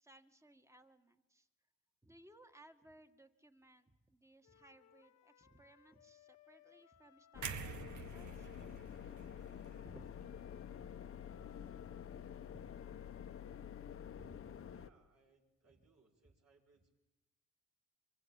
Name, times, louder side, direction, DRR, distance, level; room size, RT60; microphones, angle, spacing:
voice 1, 0.0-1.5 2.0-8.5 9.8-10.1 11.3-11.7 12.5-12.9 13.4-13.6 14.1-14.7, right 1 dB, 10° right, 7 dB, 2.0 m, -63 dB
sound 1, 4.4-8.7 9.6-14.3, left 10 dB, 65° left, 1.3 m, -67 dB
sound 2, 7.3-14.9, left 8 dB, 45° left, 1.1 m, -49 dB
sound 3, 7.4-11.4 11.8-12.0, right 8 dB, 80° right, 1.3 m, -49 dB
voice 2, 14.7-17.0, right 4 dB, 55° right, 1 dB, 6.6 m, -71 dB
25.5 x 23.5 x 9.1 m, 1.0 s
cardioid pair, 90°, 30 cm